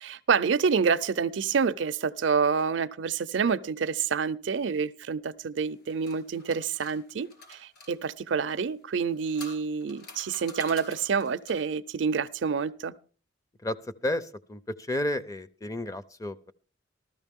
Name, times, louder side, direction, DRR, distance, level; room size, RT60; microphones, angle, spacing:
voice 1, 0.0-12.9, right 6 dB, 70° right, 0.5 m, -28 dB
sound 1, 5.6-7.9 8.9-11.7, left 2 dB, 55° left, 3.4 m, -48 dB
voice 2, 13.6-16.5, left 1 dB, 20° left, 0.5 m, -32 dB
14.0 x 13.5 x 3.6 m
head